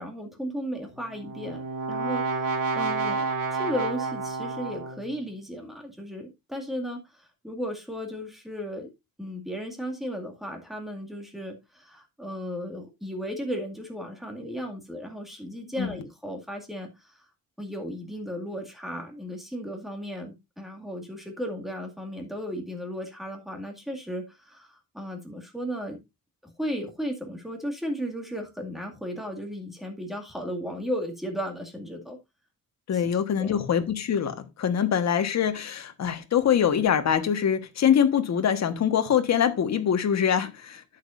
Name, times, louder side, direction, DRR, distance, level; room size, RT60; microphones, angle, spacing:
voice 1, 0.0-3.2 3.5-8.9 9.2-17.1 17.6-26.0 26.4-32.2 32.9-33.6, equal, ahead, 2.1 m, -35 dB
Brass instrument, 0.9-5.1, right 4 dB, 65° right, 2.2 m, -30 dB
voice 2, 32.9-40.8, left 8 dB, 45° left, 1.4 m, -24 dB
11.5 x 8.4 x 2.5 m
wide cardioid pair, 170°, 36 cm